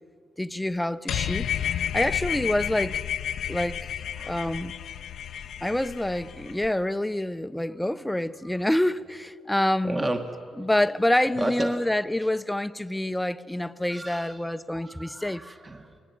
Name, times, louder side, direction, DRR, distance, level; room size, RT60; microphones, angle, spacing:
voice 1, 0.4-1.5 1.9-3.0 3.5-4.7 5.6-10.0 10.6-15.4, left 1 dB, 5° left, 0.7 m, -27 dB
sound 1, 1.1-6.7, left 9 dB, 70° left, 0.7 m, -31 dB
voice 2, 4.2-4.7 5.3-5.5 9.8-10.6 11.4-11.8 12.2-12.3 13.9-14.4 14.7-16.0, right 1 dB, 20° right, 1.4 m, -33 dB
26.0 x 19.5 x 9.7 m
cardioid pair, 90°, 0 cm